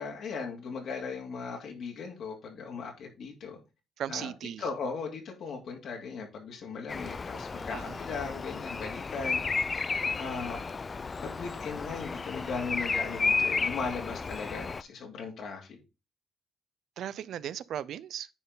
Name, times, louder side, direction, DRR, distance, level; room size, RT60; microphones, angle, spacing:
voice 1, 0.0-3.6 4.1-4.3 4.6-9.4 10.1-10.6 11.2-15.8, left 5 dB, 70° left, 2.6 m, -38 dB
voice 2, 4.0-4.6 7.7-8.0 17.0-18.3, right 10 dB, 70° right, 0.5 m, -37 dB
Bird vocalization bird call bird song, 6.9-14.8, left 4 dB, 35° left, 0.4 m, -33 dB
9.9 x 4.5 x 3.9 m
cardioid pair, 90°, 0 cm